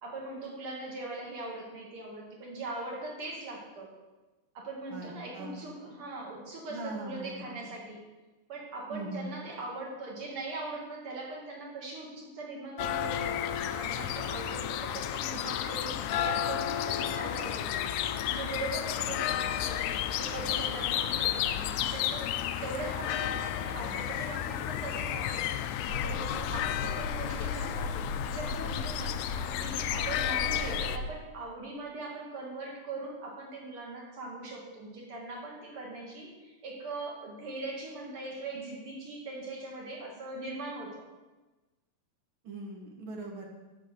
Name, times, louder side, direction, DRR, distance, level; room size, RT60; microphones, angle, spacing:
voice 1, 0.0-3.9 4.5-8.0 8.5-27.9 28.2-41.0, right 2 dB, 45° right, -2 dB, 2.4 m, -41 dB
voice 2, 4.9-5.7 6.7-7.4 8.9-9.3 42.4-43.4, right 2 dB, 70° right, 0 dB, 1.2 m, -40 dB
sound 1, 12.8-31.0, left 11 dB, 85° left, 1.7 m, -32 dB
sound 2, 25.9-31.1, left 2 dB, 65° left, 1.5 m, -38 dB
12.0 x 5.0 x 6.5 m, 1.2 s
omnidirectional pair, 4.0 m